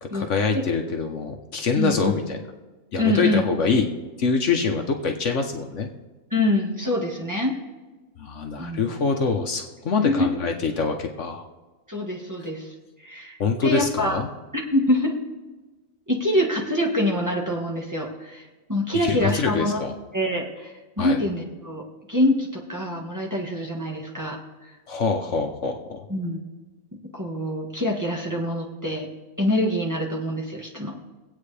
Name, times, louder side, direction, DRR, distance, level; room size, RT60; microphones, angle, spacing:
voice 1, 0.0-2.4 2.9-3.9 4.2-5.9 8.2-11.5 13.4-14.3 19.0-19.9 21.0-21.2 24.9-26.0, left 4 dB, 60° left, 4 dB, 1.2 m, -25 dB
voice 2, 1.7-2.1 3.0-3.5 6.3-7.5 8.6-8.8 10.0-10.3 11.9-12.7 13.0-14.2 14.5-15.2 16.1-18.4 18.7-19.8 20.1-21.8 22.1-24.7 26.1-26.4 27.1-29.1 29.4-30.9, left 1 dB, 15° right, -2 dB, 1.5 m, -25 dB
23.0 x 8.5 x 3.3 m, 1.2 s
omnidirectional pair, 1.4 m